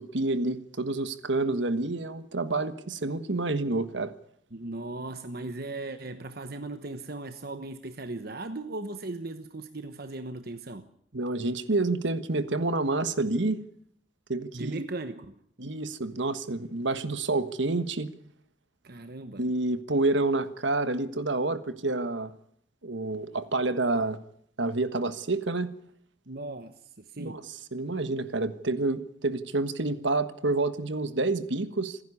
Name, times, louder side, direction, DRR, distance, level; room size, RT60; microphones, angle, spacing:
voice 1, 0.0-4.1 11.1-13.6 14.3-14.8 15.6-18.1 19.3-22.3 22.8-24.2 24.6-25.7 27.2-27.4 27.7-32.0, right 2 dB, 65° right, 1.4 m, -28 dB
voice 2, 4.5-10.9 14.5-15.3 18.8-19.5 26.3-27.5, right 2 dB, 50° right, 1.1 m, -38 dB
27.0 x 10.5 x 9.7 m
head